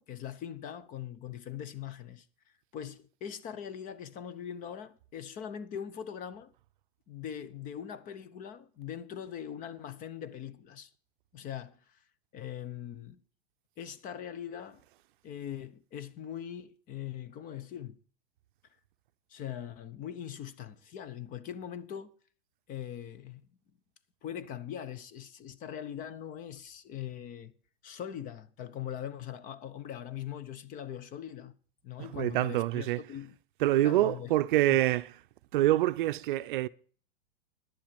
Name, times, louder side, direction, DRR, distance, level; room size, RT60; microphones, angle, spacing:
voice 1, 0.0-2.2 2.7-6.5 7.1-10.9 11.3-12.0 12.3-13.2 13.8-14.8 15.2-18.0 19.3-22.1 22.7-23.4 24.2-27.5 27.8-31.5 31.8-33.3 33.8-34.3 34.7-34.8, left 9 dB, 25° left, 0.8 m, -41 dB
voice 2, 32.1-33.0 33.6-35.1 35.5-36.7, right 15 dB, 55° right, 0.6 m, -26 dB
10.5 x 7.3 x 7.7 m
hypercardioid pair, 140°, 30 cm